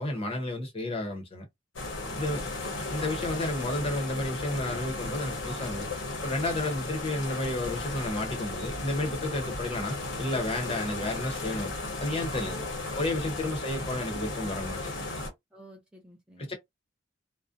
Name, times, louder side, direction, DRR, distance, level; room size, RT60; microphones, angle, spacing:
voice 1, 0.0-1.4 2.1-2.4 2.9-5.9 6.2-11.7 12.0-12.6 13.0-15.2 16.4-16.5, left 1 dB, 30° left, 0.7 m, -32 dB
sound 1, 1.8-15.3, left 2 dB, 75° left, 0.8 m, -35 dB
voice 2, 2.1-2.9 6.5-6.7 12.5-13.7 15.5-16.5, equal, 5° right, 0.5 m, -51 dB
2.5 x 2.0 x 2.4 m
head